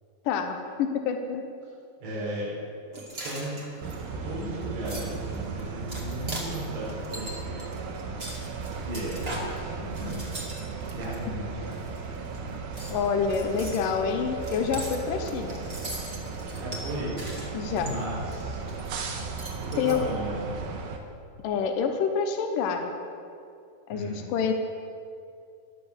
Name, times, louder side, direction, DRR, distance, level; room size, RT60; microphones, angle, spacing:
voice 1, 0.3-1.4 12.9-15.6 17.5-17.9 19.8-20.0 21.4-22.9 23.9-24.5, left 6 dB, 70° left, 5 dB, 2.3 m, -27 dB
voice 2, 2.0-2.6 3.1-3.6 4.0-7.7 8.2-8.3 8.8-10.2 10.9-11.8 16.5-17.2 17.8-18.8 19.6-20.8 23.9-24.2, right 1 dB, 90° right, -5 dB, 7.0 m, -35 dB
sound 1, 2.9-11.2 11.6-12.4 12.7-19.1 19.3-20.0, right 1 dB, 25° right, 1.3 m, -40 dB
sound 2, 3.8-21.0, right 4 dB, 70° right, 2.9 m, -36 dB
22.0 x 7.7 x 6.9 m, 2.5 s
omnidirectional pair, 4.6 m